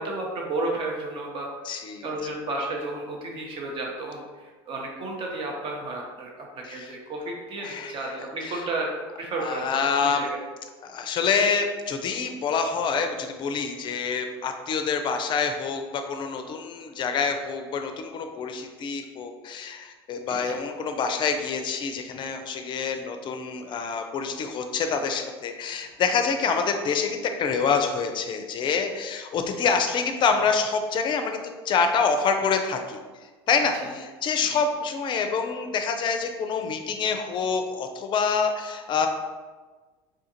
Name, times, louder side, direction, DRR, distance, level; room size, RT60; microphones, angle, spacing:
voice 1, 0.0-1.5 2.0-8.9 9.2-10.4 20.3-20.5 33.8-33.9 34.5-34.6, right 2 dB, 45° right, 0 dB, 0.8 m, -32 dB
voice 2, 1.7-2.1 6.6-6.9 7.6-8.2 8.4-8.7 9.4-10.3 10.8-33.0 33.5-39.1, left 5 dB, 40° left, 6 dB, 0.4 m, -26 dB
3.6 x 2.4 x 2.8 m, 1.3 s
hypercardioid pair, 85°, 13 cm